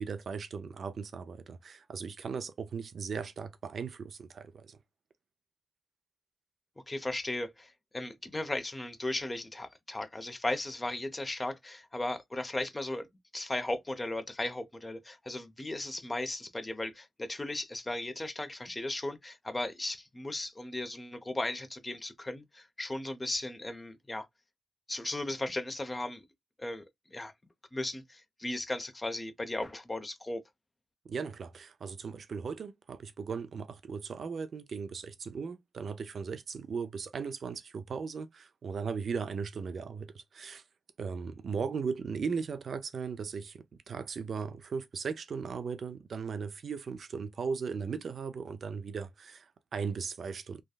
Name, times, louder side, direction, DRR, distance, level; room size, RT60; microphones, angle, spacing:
voice 1, 0.0-4.8 31.1-40.6 41.0-50.6, right 5 dB, 65° right, 0.4 m, -37 dB
voice 2, 6.9-13.1 13.3-24.3 24.9-26.2 26.6-27.3 27.7-30.4, left 1 dB, 25° left, 0.7 m, -36 dB
3.3 x 2.2 x 2.2 m
supercardioid pair, 50°, 0 cm